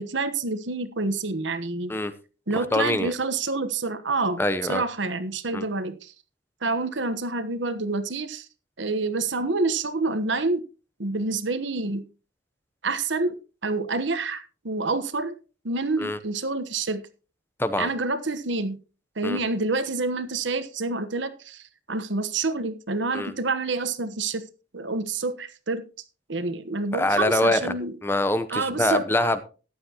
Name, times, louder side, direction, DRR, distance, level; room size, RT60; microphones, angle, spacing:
voice 1, 0.0-1.9 2.5-6.1 6.6-8.5 8.8-10.6 11.0-12.0 12.8-15.3 15.6-17.0 17.8-18.8 19.2-21.6 21.9-24.4 24.7-25.8 26.3-27.9 28.5-29.0, right 3 dB, 70° right, 12 dB, 1.2 m, -28 dB
voice 2, 2.5-3.1 4.4-4.8 5.5-5.6 16.0-16.2 17.6-17.9 19.2-19.4 23.1-23.3 26.9-27.8 28.0-29.4, left 1 dB, 10° left, 12 dB, 0.8 m, -24 dB
14.5 x 10.5 x 3.0 m, 0.34 s
head